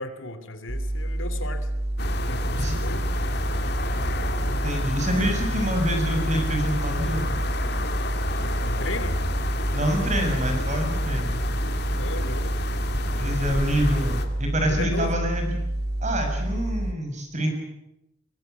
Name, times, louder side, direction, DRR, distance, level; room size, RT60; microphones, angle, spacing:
voice 1, 0.0-1.7 2.3-3.0 8.4-9.2 12.0-12.8 14.7-15.2, left 2 dB, 80° left, 10 dB, 2.8 m, -35 dB
sound 1, 0.7-16.9, right 1 dB, 50° right, 2.0 m, -28 dB
sound 2, 2.0-14.2, left 2 dB, 55° left, 2.5 m, -31 dB
voice 2, 4.5-7.5 9.7-11.3 13.1-15.4 16.0-17.5, equal, 35° right, 4 dB, 6.4 m, -27 dB
22.5 x 21.0 x 9.4 m, 0.86 s
head